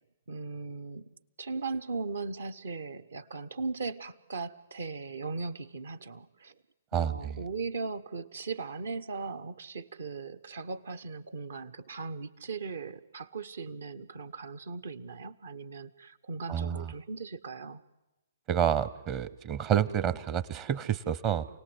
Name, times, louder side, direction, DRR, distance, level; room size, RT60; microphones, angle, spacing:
voice 1, 0.3-1.1 1.4-6.6 6.9-17.8, right 4 dB, 65° right, 13 dB, 0.9 m, -38 dB
voice 2, 6.9-7.4 16.5-16.9 18.5-21.5, right 9 dB, 30° right, 16 dB, 0.8 m, -29 dB
28.5 x 18.0 x 7.8 m, 0.99 s
figure-of-eight pair, 120°, 0 cm